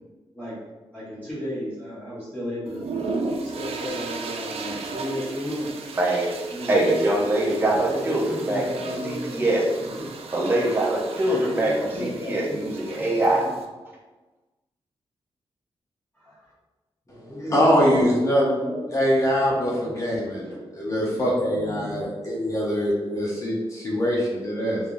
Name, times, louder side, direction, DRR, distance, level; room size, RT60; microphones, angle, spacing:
voice 1, 0.9-2.8 3.4-5.9 6.5-6.9 7.4-9.4 9.8-9.9 11.2-12.6 13.0-13.1 13.4-13.5 16.2-16.4 17.1-19.1 19.3-22.1, equal, 15° left, -11 dB, 1.0 m, -34 dB
sound 1, 2.7-13.6, right 3 dB, 85° right, 0.4 m, -35 dB
voice 2, 6.0-6.3 6.7-9.6 10.3-11.7 12.0-13.5, right 1 dB, 20° right, -3 dB, 0.6 m, -23 dB
voice 3, 17.5-18.6 18.9-20.5 20.7-24.8, equal, 30° left, -5 dB, 0.7 m, -23 dB
3.5 x 3.3 x 2.5 m, 1.2 s
wide cardioid pair, 160°, 10 cm